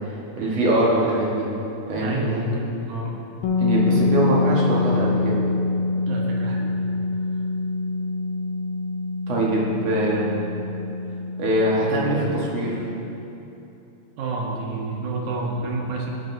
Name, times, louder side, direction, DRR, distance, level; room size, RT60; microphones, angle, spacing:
voice 1, 0.0-1.5 1.9-2.2 3.6-5.4 9.3-10.4 11.4-12.8, right 1 dB, 60° right, -5 dB, 2.5 m, -23 dB
voice 2, 2.0-3.2 6.1-6.7 14.2-16.1, right 2 dB, 90° right, -1 dB, 2.6 m, -29 dB
sound 1, 3.4-13.2, left 3 dB, 75° left, 2.0 m, -25 dB
15.0 x 7.7 x 2.7 m, 2.9 s
omnidirectional pair, 3.4 m